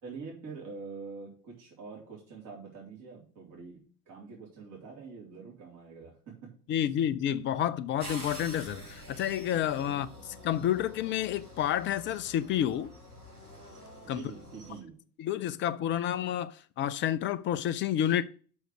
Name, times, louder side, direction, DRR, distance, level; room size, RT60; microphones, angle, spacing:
voice 1, 0.0-3.8 4.1-6.1 9.8-10.3 14.0-14.9, right 4 dB, 45° right, 3.7 m, -45 dB
voice 2, 6.7-10.1 10.4-12.9 14.1-14.2 15.2-18.2, left 11 dB, 25° left, 0.5 m, -29 dB
sound 1, 8.0-14.8, equal, 90° right, 1.8 m, -47 dB
6.3 x 6.2 x 6.4 m
figure-of-eight pair, 75°, 44 cm